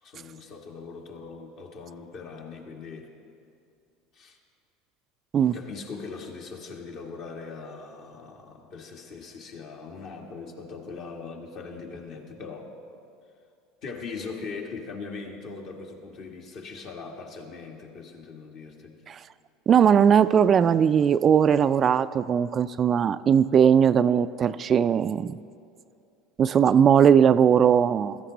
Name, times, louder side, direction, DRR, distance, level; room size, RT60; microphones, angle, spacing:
voice 1, 0.0-3.1 4.1-4.4 5.5-12.7 13.8-19.0, left 4 dB, 55° left, 1 dB, 1.9 m, -40 dB
voice 2, 19.7-25.3 26.4-28.2, right 8 dB, 40° right, 14 dB, 0.3 m, -19 dB
15.5 x 14.0 x 4.0 m, 2.5 s
hypercardioid pair, 80°, 0 cm